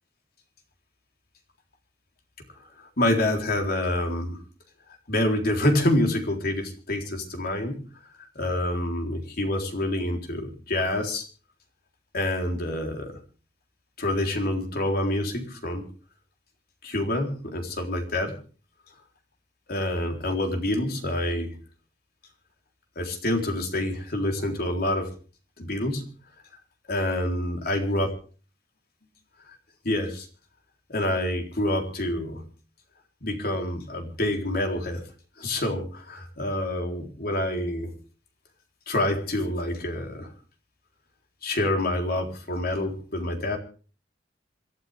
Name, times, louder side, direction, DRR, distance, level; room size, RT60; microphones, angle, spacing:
voice 1, 2.8-4.4 5.1-7.8 8.2-11.2 12.1-13.2 14.0-15.8 16.8-18.4 19.7-21.6 23.0-25.1 25.6-26.0 26.9-28.1 29.5-29.6 29.8-30.3 30.9-32.5 33.2-35.0 35.4-37.9 38.9-40.3 41.4-43.6, left 1 dB, 55° left, 3 dB, 3.8 m, -27 dB
28.0 x 11.5 x 3.5 m, 0.39 s
head